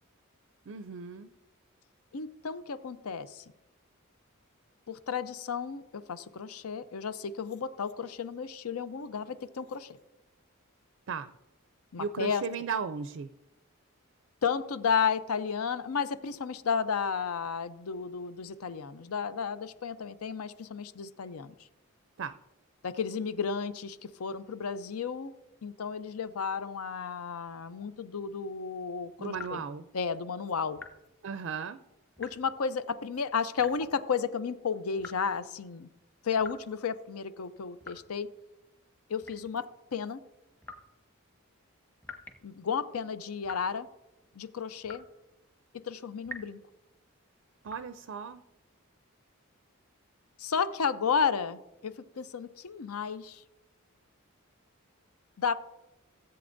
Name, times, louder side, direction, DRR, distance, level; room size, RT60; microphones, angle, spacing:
voice 1, 0.7-1.3 11.1-11.3 12.0-13.3 22.2-22.3 29.2-29.8 31.2-31.8 47.6-48.4, right 6 dB, 60° right, 10 dB, 0.4 m, -36 dB
voice 2, 2.1-3.4 4.9-10.0 11.9-12.4 14.4-21.5 22.8-25.3 25.6-29.6 29.9-30.8 32.2-35.9 36.2-38.3 39.1-40.2 42.4-43.9 44.4-45.0 45.8-46.6 50.4-53.4 55.4-55.5, left 6 dB, 85° left, 13 dB, 0.6 m, -33 dB
sound 1, 29.3-29.7 30.8-31.0 32.2-32.5 33.6-34.0 35.0-35.4 36.4-36.7 37.8-38.2 39.2-39.6 40.6-40.9 42.0-42.5 43.4-43.7 44.8-45.2 46.2-46.6 47.7-47.9, left 3 dB, 10° left, 0.9 m, -46 dB
16.5 x 7.8 x 2.6 m, 0.96 s
head